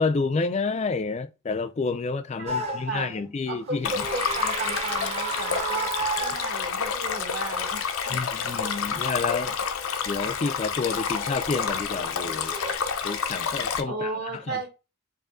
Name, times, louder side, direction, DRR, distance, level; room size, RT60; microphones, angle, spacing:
voice 1, 0.0-3.9 8.1-9.6 10.1-12.5 13.0-14.1 14.5-14.7, left 4 dB, 30° left, 0.3 m, -29 dB
voice 2, 2.4-8.2 13.9-14.7, right 3 dB, 50° right, 1.1 m, -35 dB
sound 1, 2.5-3.1 3.8-6.9 11.1-11.3 12.5-12.8, right 3 dB, 30° right, 0.5 m, -32 dB
Stream, 3.8-13.8, left 6 dB, 85° left, 0.6 m, -29 dB
4.7 x 2.6 x 2.5 m
head